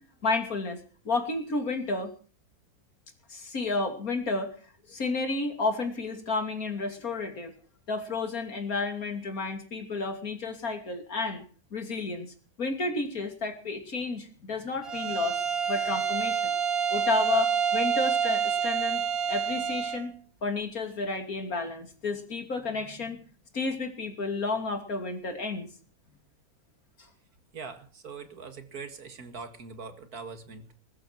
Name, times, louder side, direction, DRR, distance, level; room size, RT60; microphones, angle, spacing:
voice 1, 0.2-0.8 1.0-2.1 3.3-4.5 4.9-7.5 7.9-11.4 11.7-16.5 16.9-20.1 20.4-23.2 23.5-25.7 27.0-27.1, left 3 dB, 75° left, 6 dB, 3.3 m, -31 dB
Bowed string instrument, 14.8-20.1, right 7 dB, 40° right, 3.3 m, -28 dB
voice 2, 27.5-30.7, right 5 dB, 90° right, 9 dB, 2.5 m, -42 dB
21.5 x 13.0 x 4.6 m, 0.40 s
omnidirectional pair, 1.5 m